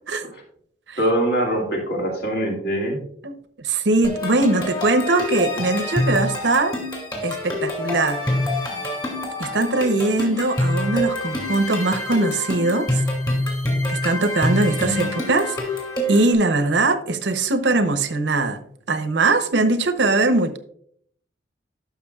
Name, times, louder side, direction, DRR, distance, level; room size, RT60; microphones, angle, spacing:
voice 1, 1.0-3.0, right 1 dB, 60° left, 0 dB, 2.1 m, -23 dB
voice 2, 3.2-6.8 7.2-8.2 9.4-13.0 13.9-15.6 16.1-18.6 18.9-20.6, right 2 dB, 75° right, 9 dB, 0.8 m, -21 dB
sound 1, 4.0-16.3, left 1 dB, 25° left, 2.5 m, -26 dB
12.5 x 6.0 x 2.4 m, 0.64 s
head